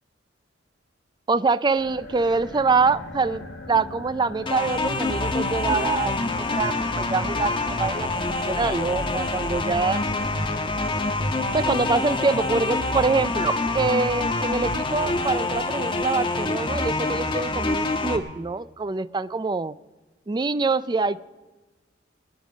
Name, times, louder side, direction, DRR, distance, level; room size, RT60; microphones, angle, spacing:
voice 1, 1.3-8.1 8.4-10.0 11.5-19.7 20.3-21.2, right 4 dB, 25° right, 15 dB, 0.4 m, -25 dB
sound 1, 1.7-12.2, left 2 dB, 65° left, 1.8 m, -41 dB
sound 2, 4.5-18.2, left 2 dB, 25° left, 1.2 m, -26 dB
21.5 x 9.8 x 5.1 m, 1.2 s
head